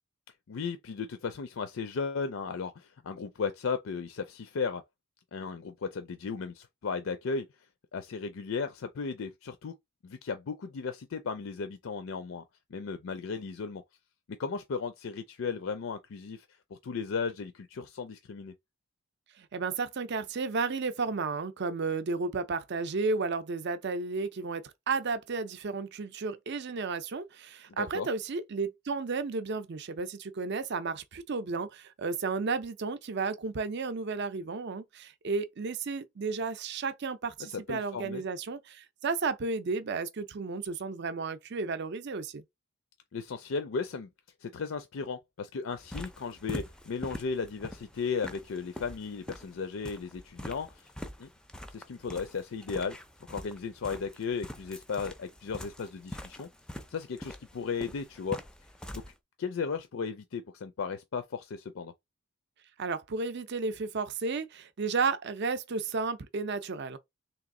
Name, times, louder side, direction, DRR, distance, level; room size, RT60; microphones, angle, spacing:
voice 1, 0.5-4.8 5.3-7.5 7.9-9.7 10.0-12.4 12.7-13.8 14.4-16.5 16.7-18.5 27.8-28.1 37.4-38.2 43.1-44.1 44.4-50.9 51.2-51.3 51.7-53.0 53.3-56.5 56.9-58.4 59.4-61.9, left 5 dB, 65° left, 0.4 m, -35 dB
voice 2, 19.4-42.4 62.8-67.0, right 4 dB, 50° right, 0.5 m, -33 dB
sound 1, 45.7-59.1, left 1 dB, 5° left, 0.4 m, -44 dB
3.3 x 3.0 x 3.7 m
head